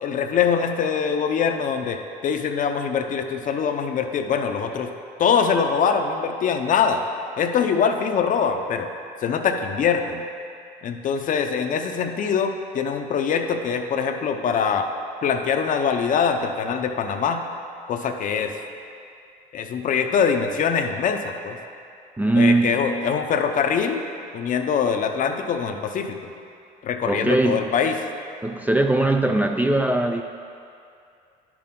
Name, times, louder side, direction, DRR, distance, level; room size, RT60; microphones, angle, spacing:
voice 1, 0.0-4.9 5.2-7.0 7.4-8.9 9.2-10.2 10.8-14.9 15.2-17.4 17.9-18.5 19.5-21.6 22.4-24.0 24.3-26.2 26.8-27.9, left 6 dB, 50° left, 6 dB, 0.6 m, -23 dB
voice 2, 22.2-22.9 27.1-27.7 28.4-30.2, right 2 dB, 10° right, 4 dB, 0.3 m, -20 dB
10.5 x 6.0 x 3.7 m, 2.4 s
cardioid pair, 110°, 17 cm